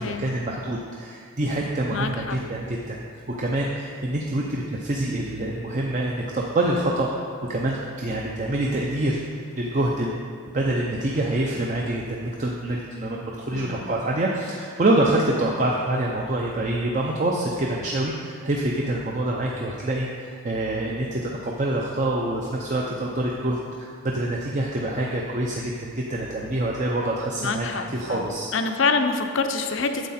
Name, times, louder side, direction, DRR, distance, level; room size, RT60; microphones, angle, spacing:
voice 1, 0.0-3.0 3.3-9.2 9.5-10.1 10.5-28.5, right 1 dB, 35° right, -2 dB, 0.6 m, -26 dB
voice 2, 1.9-2.4 13.5-13.9 27.4-30.1, left 4 dB, 60° left, 7 dB, 0.6 m, -26 dB
9.6 x 7.4 x 4.2 m, 2.1 s
head